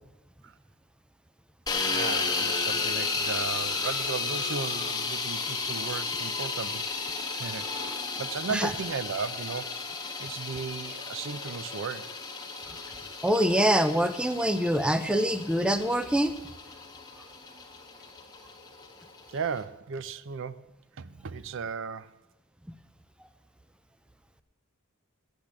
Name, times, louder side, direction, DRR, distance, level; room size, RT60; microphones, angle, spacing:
sound 1, 1.7-19.6, left 4 dB, 20° left, 1.4 m, -33 dB
voice 1, 1.8-6.9 7.4-7.7 8.2-9.8 10.2-12.1 19.3-20.6 21.0-22.2, right 5 dB, 65° right, 0.6 m, -35 dB
voice 2, 13.2-16.3, equal, 5° right, 0.5 m, -24 dB
8.7 x 8.2 x 8.7 m
head